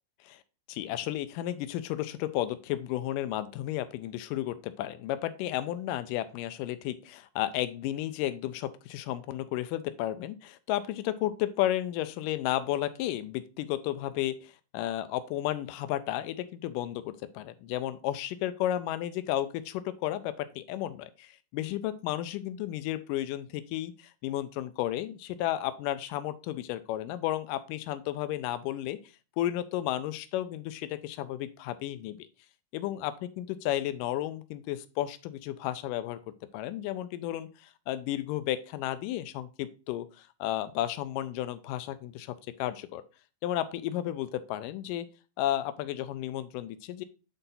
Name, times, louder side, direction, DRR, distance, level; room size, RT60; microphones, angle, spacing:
voice 1, 0.7-29.0 29.4-32.3 32.7-36.2 36.5-43.0 43.4-45.1 45.4-47.0, left 13 dB, 80° left, 12 dB, 2.1 m, -33 dB
9.0 x 4.1 x 3.9 m, 0.32 s
omnidirectional pair, 4.2 m